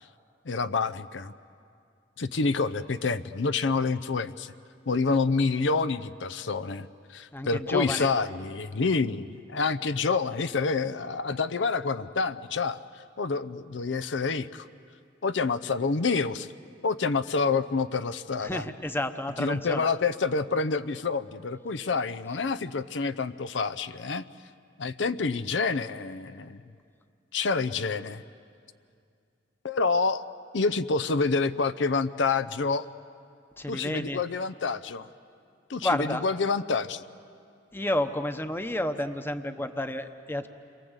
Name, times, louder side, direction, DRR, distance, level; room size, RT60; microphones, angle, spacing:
voice 1, 0.5-1.3 2.2-4.5 4.9-12.8 13.2-14.7 15.2-16.5 16.8-18.6 19.4-24.2 24.8-26.6 27.3-28.2 29.6-30.2 30.5-32.9 33.7-35.1 35.7-37.0, left 4 dB, 80° left, 12 dB, 0.7 m, -28 dB
voice 2, 7.3-8.1 18.4-19.9 33.6-34.2 35.8-36.2 37.7-40.5, left 1 dB, 10° left, 8 dB, 0.9 m, -30 dB
29.0 x 23.0 x 8.0 m, 2.4 s
head